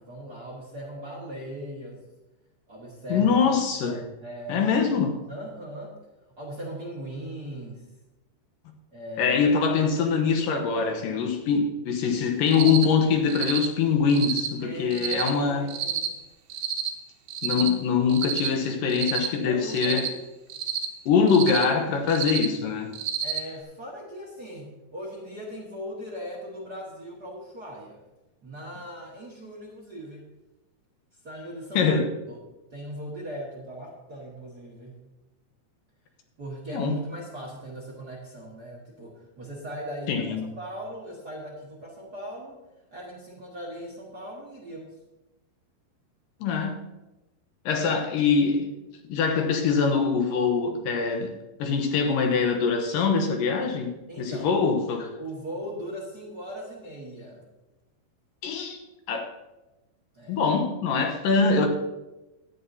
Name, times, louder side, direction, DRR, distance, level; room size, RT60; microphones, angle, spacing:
voice 1, 0.0-2.0 2.7-3.4 3.8-4.7 5.3-5.9 6.4-7.8 8.9-9.4 14.6-16.1 19.4-20.2 23.2-28.0 28.4-30.3 31.2-31.8 32.3-32.4 32.7-35.0 36.4-40.2 40.6-42.6 42.9-44.9 54.1-54.5 55.2-57.4 60.1-60.4, equal, 40° right, -3 dB, 1.4 m, -39 dB
voice 2, 3.1-4.1 4.5-5.3 9.2-15.7 17.4-20.1 21.1-22.9 31.8-32.1 36.7-37.0 40.1-40.4 46.4-46.8 47.7-48.7 49.1-55.1 58.4-58.8 59.1-59.3 60.3-61.7, left 5 dB, 70° left, 4 dB, 2.5 m, -23 dB
Cricket, 12.5-12.9 13.3-13.7 14.1-14.5 14.9-15.3 15.7-16.1 16.5-16.9 17.3-17.7 18.1-18.5 18.9-19.3 19.7-20.1 20.5-20.9 21.3-21.6 22.1-22.5 22.9-23.4, right 9 dB, 75° right, 2.9 m, -29 dB
17.0 x 11.0 x 2.8 m, 1.0 s
omnidirectional pair, 4.5 m